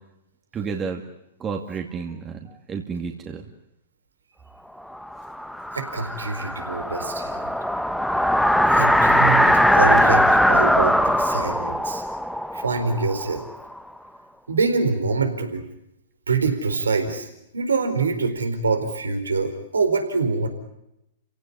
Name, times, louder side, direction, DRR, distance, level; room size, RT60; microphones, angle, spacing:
voice 1, 0.5-1.0 1.4-3.5, right 5 dB, 20° right, 3 dB, 2.3 m, -32 dB
sound 1, 5.1-13.8, equal, ahead, 1.2 m, -20 dB
voice 2, 5.7-7.5 8.7-12.0 12.5-13.4 14.5-15.6 16.3-20.5, right 4 dB, 85° right, 7 dB, 4.4 m, -25 dB
30.0 x 17.0 x 10.0 m, 0.85 s
hypercardioid pair, 115°, 0 cm